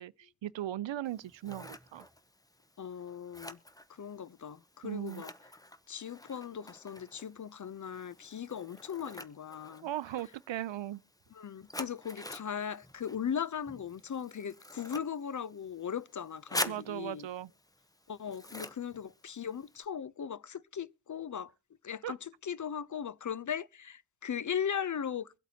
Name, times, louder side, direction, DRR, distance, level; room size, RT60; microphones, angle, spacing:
voice 1, 0.0-2.1 4.8-5.2 9.8-11.0 16.7-17.5 22.0-22.1, right 12 dB, 75° right, 0.5 m, -38 dB
Scissors, 1.1-19.8, left 1 dB, 10° left, 0.7 m, -46 dB
voice 2, 2.8-3.6 3.9-5.3 5.9-9.9 11.3-17.3 18.1-21.5 21.8-25.3, left 8 dB, 45° left, 0.5 m, -38 dB
22.5 x 8.2 x 2.8 m
wide cardioid pair, 70°, 45 cm